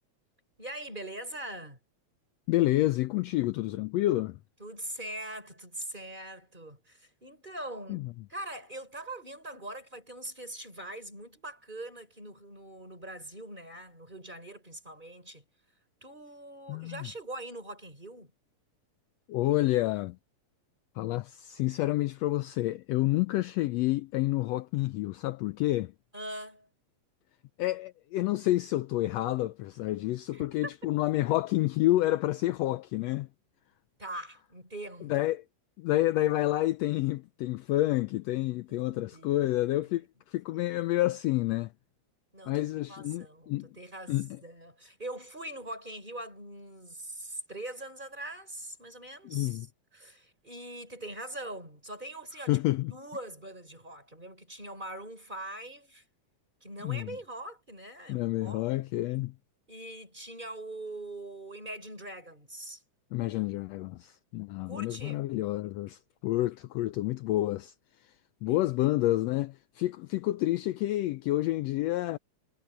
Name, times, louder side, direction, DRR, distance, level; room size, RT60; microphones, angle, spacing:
voice 1, 0.6-1.8 4.6-15.4 16.0-18.3 26.1-26.7 30.3-30.7 34.0-35.1 38.7-39.5 42.3-49.7 49.9-56.0 56.6-58.6 59.7-62.8 64.7-65.3 68.5-68.6, right 1 dB, 15° right, 5.7 m, -42 dB
voice 2, 2.5-4.4 7.9-8.1 16.7-17.1 19.3-20.2 21.0-25.9 27.6-33.3 35.0-35.4 35.8-41.7 42.5-43.7 44.1-44.3 49.2-49.7 52.5-52.9 56.8-57.2 58.1-59.3 63.1-67.7 68.4-72.2, left 16 dB, 80° left, 1.6 m, -29 dB
omnidirectional pair, 3.3 m